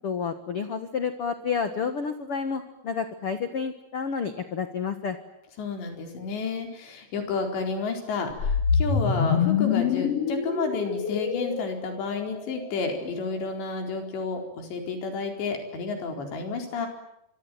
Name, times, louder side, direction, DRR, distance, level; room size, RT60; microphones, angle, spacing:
voice 1, 0.0-5.2, left 6 dB, 65° left, 9 dB, 1.4 m, -30 dB
voice 2, 5.6-16.9, left 4 dB, 80° left, 4 dB, 6.6 m, -31 dB
sound 1, 8.4-12.6, left 6 dB, 50° left, 2.2 m, -25 dB
25.5 x 25.0 x 9.2 m, 0.80 s
omnidirectional pair, 4.9 m